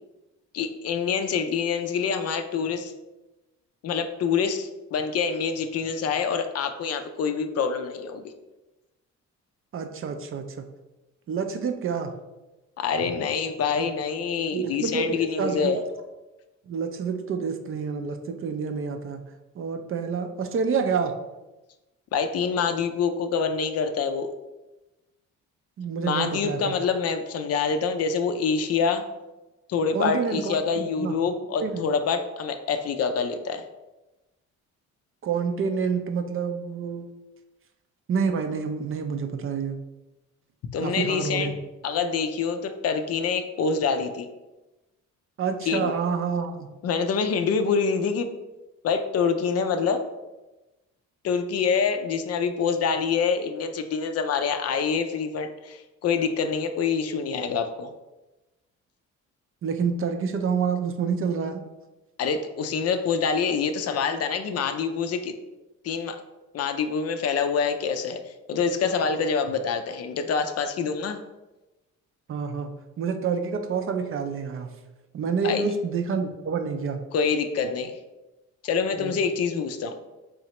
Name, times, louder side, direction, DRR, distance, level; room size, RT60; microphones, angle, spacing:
voice 1, 0.5-2.9 3.8-8.3 12.8-15.8 22.1-24.3 26.0-29.0 29.7-33.6 40.7-41.5 41.8-44.3 45.7-45.9 46.8-48.3 48.8-50.0 51.2-57.9 62.2-65.4 65.8-66.2 66.5-71.2 75.4-75.6 77.1-78.0 78.6-80.0, left 5 dB, 55° left, 8 dB, 0.4 m, -26 dB
voice 2, 9.7-10.4 11.3-12.1 14.5-15.8 16.7-19.2 19.6-21.1 25.8-26.7 29.9-31.2 31.6-31.9 35.2-37.1 38.1-39.8 40.8-41.6 45.4-46.7 59.6-61.6 72.3-72.7 73.0-74.7 75.1-77.0 79.0-79.1, right 5 dB, 45° right, 6 dB, 0.5 m, -28 dB
3.8 x 3.2 x 2.9 m, 1.0 s
cardioid pair, 90°, 30 cm